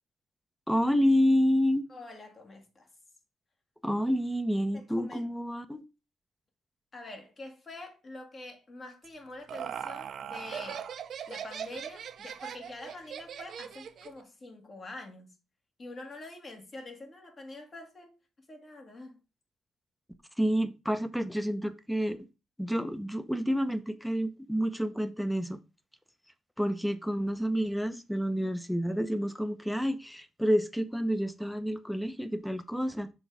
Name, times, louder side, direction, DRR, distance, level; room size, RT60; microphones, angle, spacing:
voice 1, 0.7-1.9 3.8-5.8 20.4-22.2 22.6-25.6 26.6-33.1, equal, 5° left, 0.8 m, -29 dB
voice 2, 1.9-2.9 4.7-5.3 6.9-10.9 11.3-15.3 15.8-18.1 18.5-19.2 28.3-28.5, left 2 dB, 35° left, 2.0 m, -46 dB
Laughter, 9.0-14.2, right 8 dB, 60° right, 0.6 m, -40 dB
6.0 x 3.9 x 4.7 m
cardioid pair, 90°, 0 cm